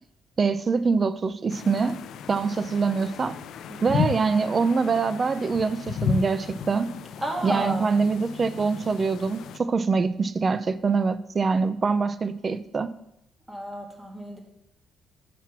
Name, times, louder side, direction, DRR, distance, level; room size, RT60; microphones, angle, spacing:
voice 1, 0.4-1.9 2.3-3.4 3.8-6.9 7.4-12.9, right 4 dB, 40° right, 0.4 m, -24 dB
sound 1, 1.5-9.6, left 7 dB, 75° left, 0.4 m, -34 dB
voice 2, 7.2-7.9 13.5-14.4, right 1 dB, 15° right, 1.9 m, -32 dB
6.0 x 5.9 x 5.9 m
cardioid pair, 90°, 0 cm